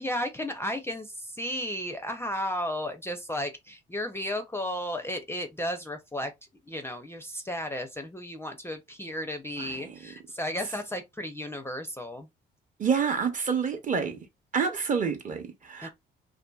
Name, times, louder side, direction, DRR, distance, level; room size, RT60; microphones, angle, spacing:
voice 1, 0.0-6.3 6.7-12.3 15.8-15.9, left 1 dB, 10° left, 0.4 m, -34 dB
voice 2, 9.6-9.9 12.8-14.2 14.5-15.9, right 6 dB, 40° right, 0.7 m, -28 dB
2.6 x 2.5 x 2.2 m
cardioid pair, 90°, 20 cm